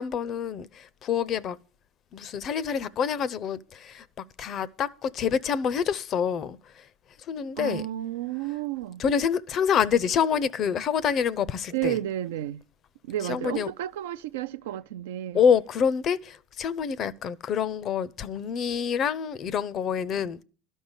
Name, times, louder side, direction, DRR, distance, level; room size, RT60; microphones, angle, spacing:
voice 1, 0.0-1.6 2.1-4.0 4.4-6.8 7.3-7.8 9.0-12.0 13.3-13.7 15.3-20.4, left 7 dB, 40° left, 0.6 m, -27 dB
voice 2, 7.6-9.0 11.7-12.6 13.0-15.4, right 13 dB, 85° right, 0.5 m, -31 dB
12.0 x 5.4 x 8.0 m
supercardioid pair, 115°, 0 cm